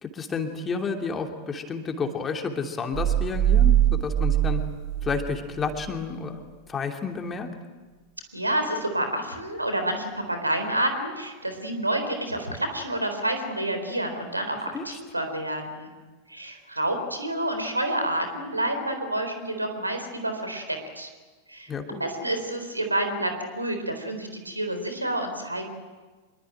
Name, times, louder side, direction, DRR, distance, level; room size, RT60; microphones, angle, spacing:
voice 1, 0.0-4.6 5.0-6.4 6.7-7.5 14.7-15.0 21.7-22.0, left 5 dB, 20° left, 4 dB, 2.9 m, -30 dB
sound 1, 2.9-5.9, right 11 dB, 40° right, 3.2 m, -22 dB
voice 2, 8.3-15.9 16.3-21.1 21.5-25.7, right 1 dB, 85° right, 7 dB, 4.0 m, -29 dB
26.0 x 22.5 x 9.1 m, 1.3 s
figure-of-eight pair, 90°, 0 cm